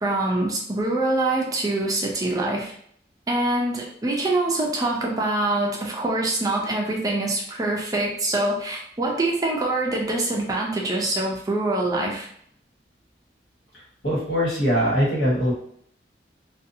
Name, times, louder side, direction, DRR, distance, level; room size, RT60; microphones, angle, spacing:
voice 1, 0.0-2.7 3.3-12.3, right 2 dB, 20° right, -2 dB, 0.4 m, -24 dB
voice 2, 14.0-15.5, equal, 75° left, -6 dB, 1.4 m, -21 dB
2.6 x 2.3 x 2.6 m, 0.65 s
head